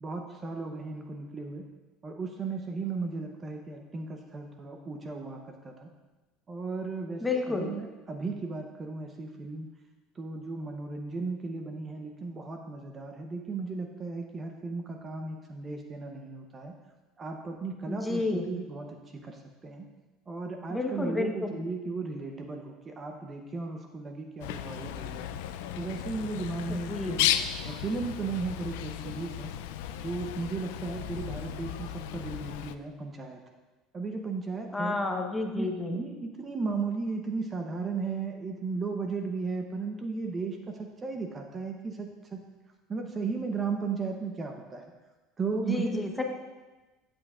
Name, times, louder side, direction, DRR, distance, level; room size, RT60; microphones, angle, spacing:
voice 1, 0.0-1.7 2.0-5.9 6.5-9.7 10.2-16.7 17.2-19.8 20.3-25.4 25.7-27.3 27.7-29.5 30.0-33.4 33.9-35.0 35.6-42.4 42.9-44.9 45.4-46.2, right 4 dB, 25° right, 3 dB, 0.8 m, -35 dB
voice 2, 7.2-7.7 17.9-18.6 20.7-21.6 26.7-27.3 34.7-36.0 45.5-46.2, left 3 dB, 10° left, 2 dB, 1.1 m, -31 dB
Bird, 24.4-32.8, left 11 dB, 85° left, 0.4 m, -34 dB
15.0 x 7.8 x 2.5 m, 1.2 s
cardioid pair, 130°, 0 cm